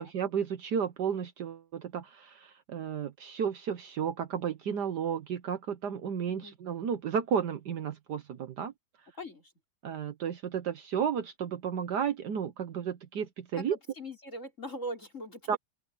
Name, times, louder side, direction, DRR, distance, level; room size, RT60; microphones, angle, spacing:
voice 1, 0.0-8.7 9.8-13.8 15.5-15.6, right 7 dB, 70° right, 1.6 m, -33 dB
voice 2, 9.2-9.5 13.6-15.6, equal, 40° left, 5.3 m, -41 dB
open air
omnidirectional pair, 1.9 m